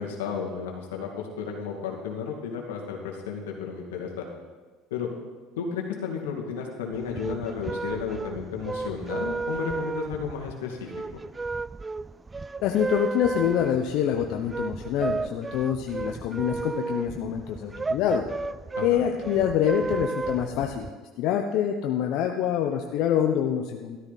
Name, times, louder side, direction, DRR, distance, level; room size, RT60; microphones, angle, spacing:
voice 1, 0.0-4.2 4.9-5.1 5.6-10.9 18.8-19.0, left 6 dB, 85° left, 0 dB, 2.3 m, -33 dB
sound 1, 6.9-20.9, right 3 dB, 20° right, 0.3 m, -33 dB
voice 2, 12.6-18.2 18.8-20.9 21.2-24.0, left 9 dB, 65° left, 3 dB, 0.9 m, -26 dB
13.0 x 12.5 x 4.2 m, 1.3 s
hypercardioid pair, 80°, 0 cm